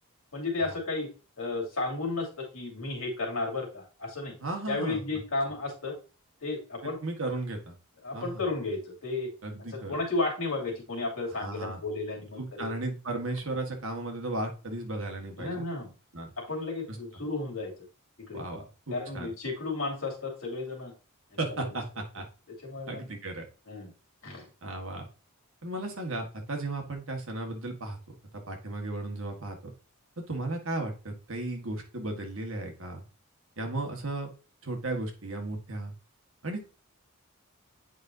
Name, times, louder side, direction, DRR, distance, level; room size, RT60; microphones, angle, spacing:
voice 1, 0.3-1.1 1.4-4.3 4.7-5.9 6.4-7.0 8.0-9.3 9.7-12.7 15.4-15.9 16.4-17.7 18.3-18.4 18.9-20.9 22.6-23.0 23.7-23.9 24.2-24.5, left 3 dB, 70° left, -2 dB, 2.8 m, -33 dB
voice 2, 4.4-5.0 6.8-7.7 8.1-8.4 9.4-10.0 11.4-11.8 12.4-15.6 16.1-16.3 18.3-19.3 21.4-22.3 22.9-23.5 24.6-25.1 25.6-28.0 28.5-29.7 30.2-33.0 33.6-34.3 34.6-35.9 36.4-36.6, right 2 dB, 60° right, 2 dB, 1.6 m, -35 dB
8.6 x 5.2 x 2.8 m, 0.35 s
head